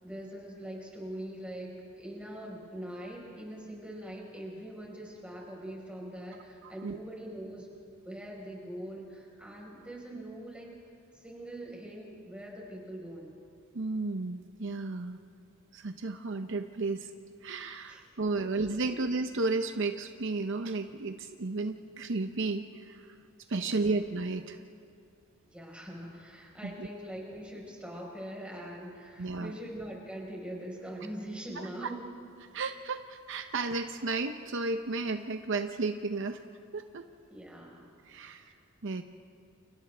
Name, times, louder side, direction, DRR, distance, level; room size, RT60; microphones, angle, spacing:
voice 1, 0.0-7.7 8.0-10.8 11.1-13.3 17.9-18.0 18.4-18.5 18.8-19.0 23.6-23.9 25.5-32.1 37.3-37.9 38.1-38.5, right 1 dB, 5° right, -3 dB, 4.6 m, -43 dB
voice 2, 6.6-7.0 13.7-15.2 15.7-17.1 17.4-23.0 23.5-24.6 26.6-26.9 29.2-29.6 32.5-36.4 36.7-37.0 38.1-38.4 38.8-39.0, right 3 dB, 60° right, 7 dB, 0.7 m, -33 dB
30.0 x 29.0 x 3.4 m, 2.4 s
head